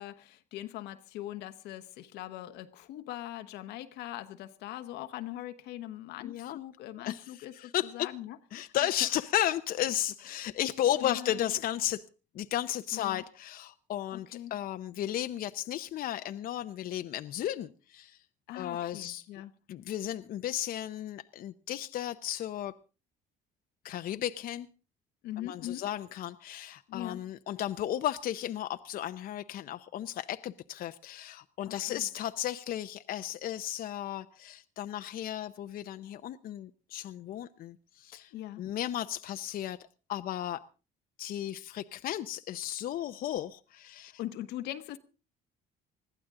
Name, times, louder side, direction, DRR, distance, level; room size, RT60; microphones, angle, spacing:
voice 1, 0.0-8.7 11.0-11.5 12.9-13.2 14.1-14.5 18.5-19.5 25.2-25.9 26.9-27.2 31.7-32.1 38.3-38.6 44.2-45.0, left 13 dB, 90° left, 1.2 m, -41 dB
voice 2, 6.2-6.6 7.1-8.1 8.5-12.0 12.3-18.2 18.5-19.3 19.7-22.7 23.8-24.7 25.4-38.3 38.6-39.8 40.1-40.6 41.2-44.2, left 12 dB, 60° left, 0.7 m, -34 dB
21.0 x 14.0 x 3.7 m
cardioid pair, 110°, 17 cm